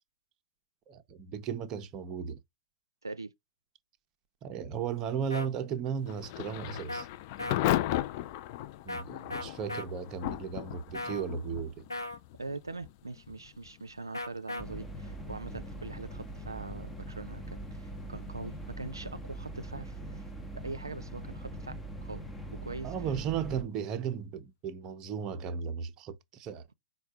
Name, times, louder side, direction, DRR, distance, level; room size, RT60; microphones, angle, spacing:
voice 1, 0.9-2.4 4.4-7.1 7.4-7.5 8.8-11.9 22.8-26.6, right 7 dB, 25° right, 0.6 m, -35 dB
voice 2, 3.0-3.3 12.4-20.3 20.6-22.2 22.5-22.9, right 3 dB, 80° right, 0.5 m, -42 dB
sound 1, 5.3-5.5 6.9-7.0 7.4-7.6 8.9-9.0 9.3-9.9 10.9-11.2 11.9-12.2 14.1-14.6, left 2 dB, 85° left, 0.7 m, -36 dB
Thunder / Rain, 6.0-22.8, left 14 dB, 40° left, 0.4 m, -39 dB
sound 2, 14.6-23.6, right 1 dB, 5° left, 0.8 m, -42 dB
4.3 x 2.3 x 4.7 m
figure-of-eight pair, 110°, 2 cm